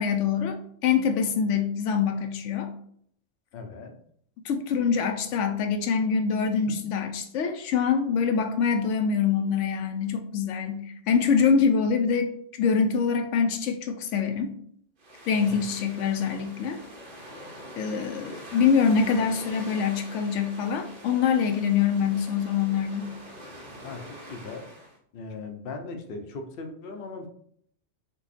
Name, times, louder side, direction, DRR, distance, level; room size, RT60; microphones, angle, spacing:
voice 1, 0.0-2.7 4.4-14.5 15.3-16.8 17.8-23.1, left 6 dB, 85° left, 6 dB, 0.9 m, -25 dB
voice 2, 3.5-4.0 15.5-15.6 23.8-24.7 25.1-27.3, left 3 dB, 55° left, 5 dB, 0.8 m, -38 dB
sound 1, 15.0-25.0, equal, 50° right, 1.0 m, -44 dB
5.4 x 2.3 x 4.1 m, 0.65 s
omnidirectional pair, 1.2 m